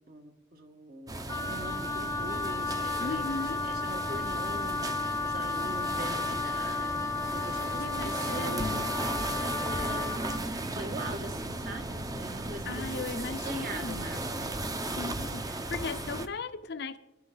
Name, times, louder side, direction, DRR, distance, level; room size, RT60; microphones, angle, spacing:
voice 1, 0.0-8.7 9.0-14.6, right 2 dB, 55° right, 1.7 m, -43 dB
sound 1, 1.1-16.3, right 2 dB, 20° right, 0.8 m, -36 dB
Wind instrument woodwind instrument, 1.3-10.4, left 3 dB, 15° left, 0.8 m, -33 dB
voice 2, 3.0-3.7 7.8-8.9 12.7-14.1 15.0-17.0, left 4 dB, 60° left, 0.6 m, -37 dB
23.5 x 12.5 x 4.0 m
head